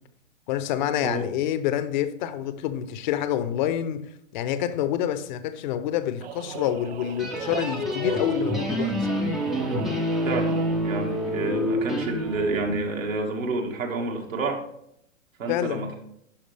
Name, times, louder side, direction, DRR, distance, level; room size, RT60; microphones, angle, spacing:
voice 1, 0.5-4.0 4.3-8.9 15.5-15.9, left 11 dB, 35° left, 0.7 m, -27 dB
sound 1, 6.2-10.9, right 11 dB, 55° right, 0.5 m, -37 dB
sound 2, 7.2-12.8, equal, ahead, 0.4 m, -27 dB
voice 2, 10.2-14.6 15.4-16.0, right 3 dB, 80° right, 1.9 m, -29 dB
11.5 x 4.9 x 3.3 m
hypercardioid pair, 135°, 39 cm